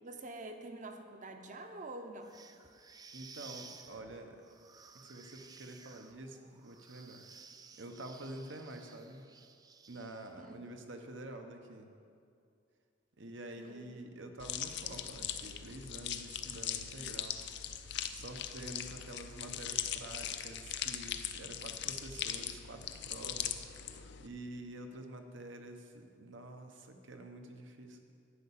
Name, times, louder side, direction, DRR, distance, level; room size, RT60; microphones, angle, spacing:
voice 1, 0.0-2.4 10.4-10.6 13.6-14.3, right 2 dB, 40° right, 6 dB, 0.8 m, -47 dB
sound 1, 2.2-10.5, right 5 dB, 20° right, 0.4 m, -55 dB
voice 2, 3.1-4.4 5.1-7.2 7.8-9.2 9.9-11.9 13.2-17.4 18.1-23.9 24.2-28.0, right 1 dB, 70° right, 5 dB, 1.0 m, -48 dB
sound 2, 14.4-24.3, left 10 dB, 60° left, 0.5 m, -40 dB
11.5 x 5.6 x 8.4 m, 2.4 s
head